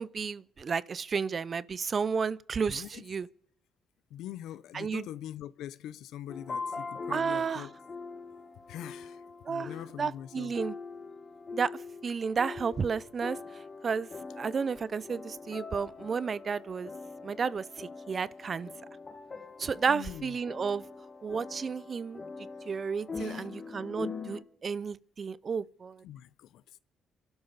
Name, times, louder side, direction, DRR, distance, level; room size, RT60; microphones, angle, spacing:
voice 1, 0.0-3.3 4.7-5.0 7.1-7.7 9.5-9.7 10.0-10.7 11.5-11.7 12.0-13.4 13.8-14.1 14.4-16.9 17.2-18.7 19.6-20.8 21.2-22.2 22.7-26.0, right 5 dB, 40° right, 0.6 m, -32 dB
voice 2, 2.7-3.0 4.1-7.7 8.7-9.2 9.5-10.5 19.9-20.4 23.2-23.5 26.0-26.6, left 11 dB, 85° left, 0.6 m, -43 dB
sound 1, 6.3-24.4, left 4 dB, 35° left, 1.8 m, -43 dB
28.5 x 12.0 x 4.1 m
cardioid pair, 90°, 0 cm